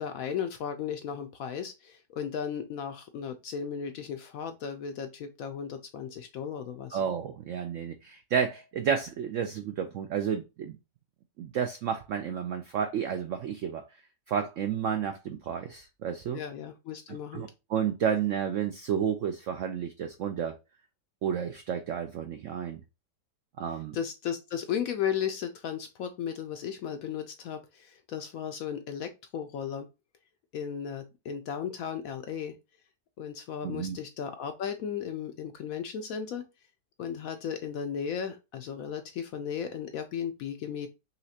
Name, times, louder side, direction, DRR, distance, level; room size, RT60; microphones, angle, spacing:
voice 1, 0.0-7.0 16.3-17.5 23.9-29.9 30.5-32.6 33.2-36.5 37.0-40.9, left 8 dB, 70° left, 0.8 m, -35 dB
voice 2, 6.9-10.8 11.4-13.8 14.3-16.4 17.1-20.6 21.2-22.8 23.6-24.0 33.6-34.0, right 8 dB, 75° right, 0.7 m, -31 dB
5.6 x 3.1 x 2.7 m
omnidirectional pair, 1.8 m